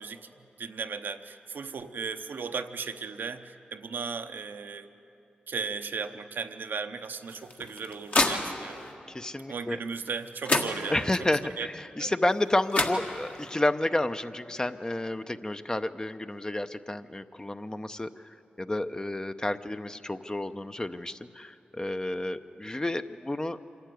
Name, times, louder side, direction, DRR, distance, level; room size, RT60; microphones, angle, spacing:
voice 1, 0.0-4.9 5.5-8.8 9.5-11.7 12.0-12.1, right 5 dB, 75° right, 7 dB, 0.8 m, -36 dB
sound 1, 7.3-8.9 10.1-10.2 10.4-11.3 12.4-12.5 12.7-13.6, left 2 dB, 50° left, 1.7 m, -29 dB
voice 2, 9.1-9.8 10.9-18.1 18.6-23.6, left 1 dB, 20° left, 10 dB, 0.7 m, -30 dB
26.0 x 11.5 x 9.3 m, 2.7 s
cardioid pair, 50°, 3 cm